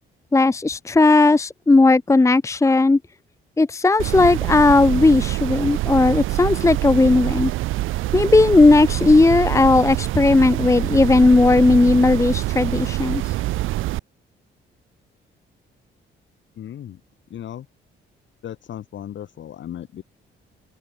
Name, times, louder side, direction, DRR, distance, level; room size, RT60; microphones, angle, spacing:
voice 1, 0.3-3.0 3.6-7.5 8.1-13.3, left 3 dB, 15° left, 0.8 m, -16 dB
sound 1, 4.0-14.0, right 17 dB, 90° right, 0.9 m, -25 dB
voice 2, 16.6-17.0 17.3-17.7 18.4-20.0, left 10 dB, 70° left, 7.4 m, -36 dB
open air
cardioid pair, 90°, 20 cm